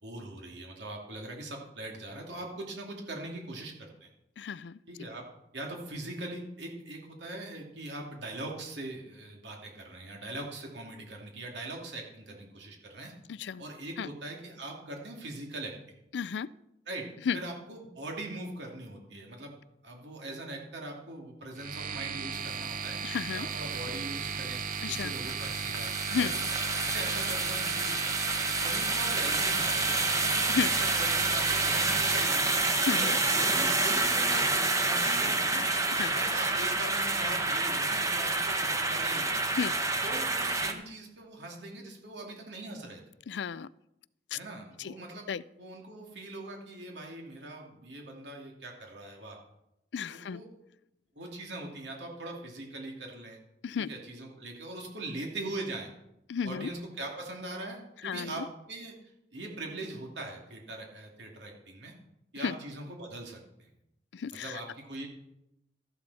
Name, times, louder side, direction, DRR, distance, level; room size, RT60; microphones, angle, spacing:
voice 1, 0.0-4.1 4.9-5.2 5.5-13.1 13.6-15.7 16.9-17.0 17.3-19.5 19.8-23.0 23.3-26.2 26.8-28.3 28.6-30.3 30.8-32.6 32.9-35.7 36.0-39.3 40.0-43.0 44.3-45.3 45.6-49.4 50.1-50.5 51.2-53.4 53.8-55.9 56.4-58.9 59.3-61.9 62.3-63.7 64.3-65.1, right 2 dB, 75° right, 0 dB, 2.7 m, -41 dB
voice 2, 4.4-4.8 13.3-13.6 14.0-14.1 16.1-16.5 17.3-17.4 23.0-23.5 24.8-25.1 26.1-26.3 30.5-30.7 32.8-33.2 35.9-36.1 39.6-39.7 43.3-43.7 44.3-44.4 44.8-44.9 45.3-45.4 49.9-50.4 53.6-53.9 56.3-56.7 58.0-58.3 62.4-62.5 64.1-64.5, left 6 dB, 75° left, 19 dB, 0.4 m, -32 dB
sound 1, 21.6-32.2, right 6 dB, 50° right, 0.8 m, -36 dB
sound 2, 22.3-40.7, right 3 dB, 20° right, 1.0 m, -29 dB
13.5 x 11.0 x 4.2 m, 0.84 s
head